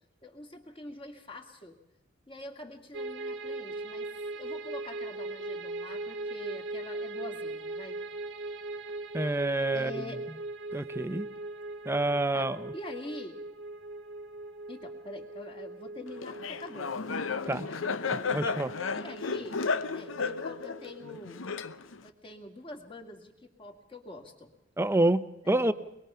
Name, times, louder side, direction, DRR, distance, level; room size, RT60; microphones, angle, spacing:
voice 1, 0.2-1.8 2.3-8.0 9.7-10.2 12.3-12.5 12.7-13.4 14.7-17.1 17.7-18.3 18.9-19.6 19.9-21.5 22.0-24.5 25.4-25.7, left 1 dB, 25° left, 3 dB, 2.3 m, -45 dB
sound 1, 2.9-21.2, right 2 dB, 65° right, 1.4 m, -40 dB
voice 2, 9.1-10.0 10.7-11.3 11.8-12.7 17.5-17.7 18.3-18.7 24.8-25.7, right 2 dB, 15° right, 12 dB, 0.7 m, -27 dB
Laughter, 16.2-22.1, left 4 dB, 90° left, 0.8 m, -33 dB
23.0 x 22.0 x 5.7 m, 0.92 s
head